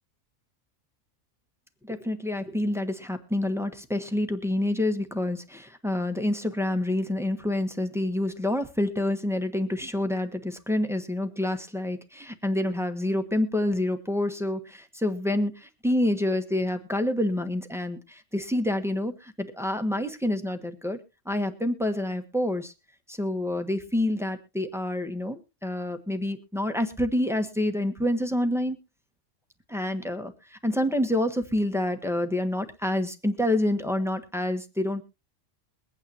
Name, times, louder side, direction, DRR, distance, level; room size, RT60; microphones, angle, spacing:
voice 1, 1.8-21.0 21.2-22.7 23.1-28.8 29.7-35.0, left 1 dB, ahead, 6 dB, 1.1 m, -28 dB
22.5 x 9.0 x 2.9 m, 0.28 s
omnidirectional pair, 1.3 m